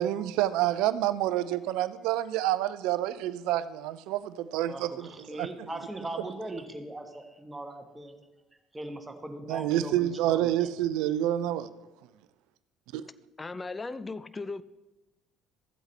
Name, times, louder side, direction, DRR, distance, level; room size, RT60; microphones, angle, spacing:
voice 1, 0.0-5.1 5.4-5.5 9.5-11.7 12.9-13.1, right 13 dB, 65° right, 0.4 m, -28 dB
voice 2, 4.7-8.3 8.7-10.7, right 1 dB, 15° right, 1.3 m, -40 dB
voice 3, 13.4-14.6, left 3 dB, 20° left, 0.5 m, -37 dB
14.0 x 8.0 x 3.3 m
figure-of-eight pair, 55°, 0 cm